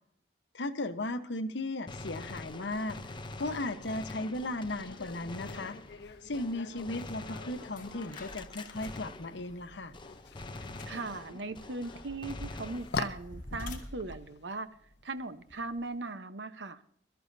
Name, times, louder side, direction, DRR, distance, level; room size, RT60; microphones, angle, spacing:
voice 1, 0.5-3.0 3.4-5.8 6.2-9.9, left 2 dB, 90° left, 1.1 m, -36 dB
Gunshot gunfire, 1.9-9.7 9.9-13.3, left 2 dB, 25° left, 0.7 m, -45 dB
sound 1, 4.8-16.1, left 4 dB, 70° left, 0.8 m, -45 dB
sound 2, 7.6-15.8, left 1 dB, 50° left, 2.4 m, -48 dB
voice 2, 10.9-14.7 15.0-16.8, right 3 dB, 85° right, 1.0 m, -39 dB
23.0 x 13.0 x 2.7 m
head